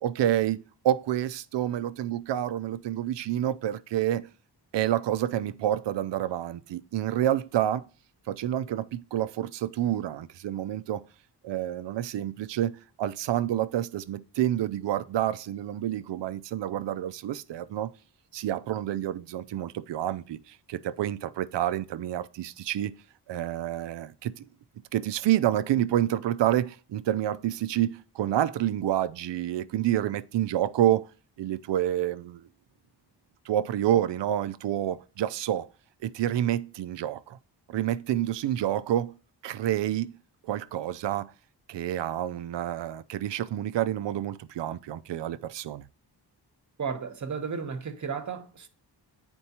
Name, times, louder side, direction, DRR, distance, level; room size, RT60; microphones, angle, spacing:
voice 1, 0.0-4.3 4.7-7.8 8.3-11.0 11.4-17.9 18.3-22.9 23.3-24.5 24.9-31.1 31.4-32.5 33.5-35.7 36.0-37.4 37.7-39.1 39.4-40.1 40.5-41.3 41.7-45.8, right 12 dB, 85° right, 0.6 m, -28 dB
voice 2, 46.8-48.7, right 6 dB, 45° right, 1.0 m, -33 dB
9.4 x 4.4 x 2.9 m
wide cardioid pair, 120°, 41 cm